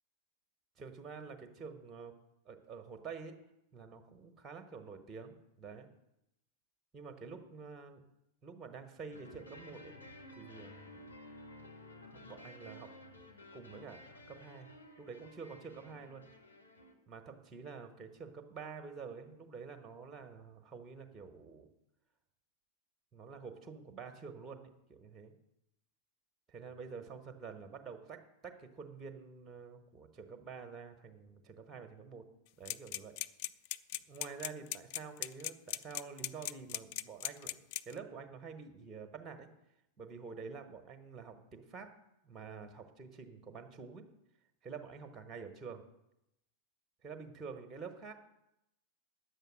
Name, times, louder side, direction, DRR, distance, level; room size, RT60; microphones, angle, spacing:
voice 1, 0.8-2.1 2.4-3.4 3.7-5.9 6.9-8.0 8.4-9.9 10.3-11.1 12.0-12.9 13.5-14.7 15.0-16.2 17.1-21.7 23.1-25.3 26.5-32.2 32.6-33.2 34.1-39.5 40.0-41.9 42.2-44.1 44.6-45.8 47.0-48.1, right 5 dB, 20° right, 6 dB, 1.4 m, -48 dB
sound 1, 9.1-16.9, left 1 dB, 75° left, 1.3 m, -54 dB
sound 2, 32.7-38.0, left 15 dB, 45° left, 0.3 m, -38 dB
10.0 x 7.7 x 6.4 m, 0.84 s
figure-of-eight pair, 90°, 0 cm